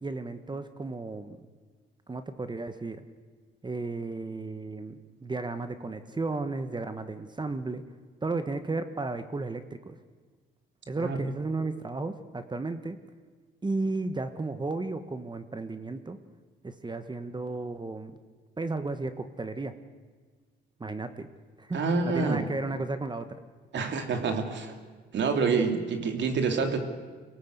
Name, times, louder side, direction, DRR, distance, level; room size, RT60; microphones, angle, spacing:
voice 1, 0.0-1.5 2.1-3.0 3.6-7.8 8.2-9.9 10.9-13.0 13.6-16.2 16.6-18.1 18.6-19.7 20.8-21.3 21.6-23.3, right 3 dB, 20° right, 10 dB, 1.3 m, -34 dB
voice 2, 21.7-22.5 23.7-24.8 25.1-26.8, right 4 dB, 65° right, 5 dB, 3.0 m, -27 dB
24.0 x 18.0 x 8.2 m, 1.5 s
cardioid pair, 90°, 20 cm